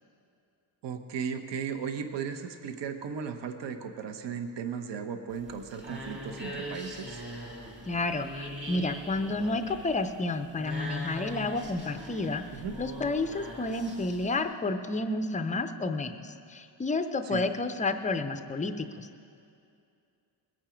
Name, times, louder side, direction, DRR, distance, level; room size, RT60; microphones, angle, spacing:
voice 1, 0.8-7.2 12.5-12.8 17.2-17.4, right 6 dB, 65° right, 6 dB, 0.9 m, -36 dB
sound 1, 5.3-14.4, equal, 25° right, 2.2 m, -41 dB
voice 2, 7.9-12.4 12.8-19.1, left 2 dB, 20° left, 8 dB, 0.4 m, -30 dB
21.0 x 8.8 x 5.0 m, 2.5 s
wide cardioid pair, 175°, 45 cm